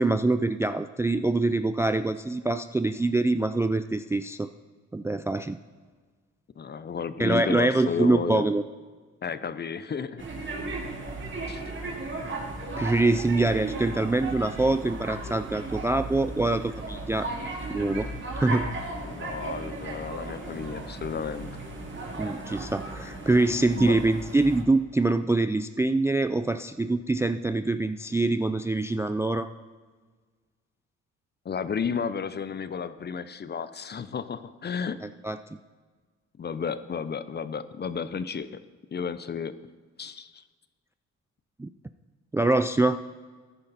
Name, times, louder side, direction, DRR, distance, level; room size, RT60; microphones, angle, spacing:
voice 1, 0.0-4.5 4.9-5.6 7.2-8.6 12.8-17.3 17.7-18.1 18.3-18.7 22.2-29.5 35.2-35.4 41.6-41.7 42.3-43.0, right 2 dB, 10° right, 11 dB, 0.3 m, -24 dB
voice 2, 6.6-8.5 9.2-10.2 11.5-11.6 19.1-21.5 23.7-23.9 31.4-35.0 36.4-38.6 38.9-39.6 40.0-40.4, left 6 dB, 35° left, 14 dB, 0.7 m, -32 dB
sound 1, 10.2-24.6, right 2 dB, 40° right, 2.6 m, -36 dB
14.5 x 10.0 x 4.2 m, 1.5 s
cardioid pair, 90°, 30 cm